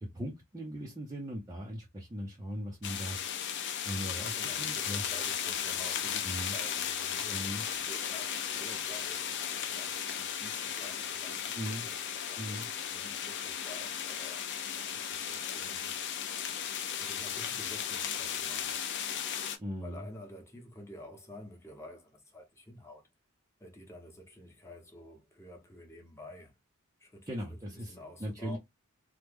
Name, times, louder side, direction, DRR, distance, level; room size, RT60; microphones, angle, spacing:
voice 1, 0.0-3.2 3.8-5.0 6.2-6.5 7.3-7.6 11.6-11.9 12.4-12.7 19.6-20.1 27.3-28.6, equal, 15° right, 0.5 m, -39 dB
sound 1, 2.8-19.6, left 8 dB, 55° left, 0.5 m, -35 dB
voice 2, 4.1-16.0 17.0-18.8 19.8-23.1 23.6-26.5 27.0-28.6, left 1 dB, 15° left, 0.9 m, -50 dB
3.1 x 2.1 x 3.3 m
head